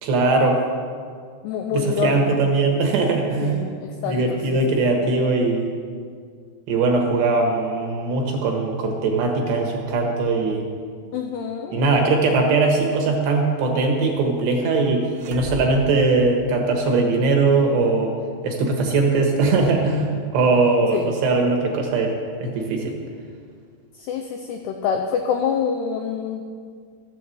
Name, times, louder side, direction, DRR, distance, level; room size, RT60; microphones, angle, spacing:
voice 1, 0.0-0.6 1.7-3.6 4.0-5.7 6.7-10.6 11.7-18.1 18.4-22.9, right 3 dB, 70° right, 2 dB, 3.3 m, -20 dB
voice 2, 1.4-2.5 3.4-4.6 11.1-11.8 20.9-21.1 24.0-26.4, left 7 dB, 85° left, 4 dB, 2.3 m, -26 dB
sound 1, 15.1-17.1, right 5 dB, 90° right, 3.9 m, -37 dB
14.5 x 8.4 x 7.7 m, 2.1 s
omnidirectional pair, 5.8 m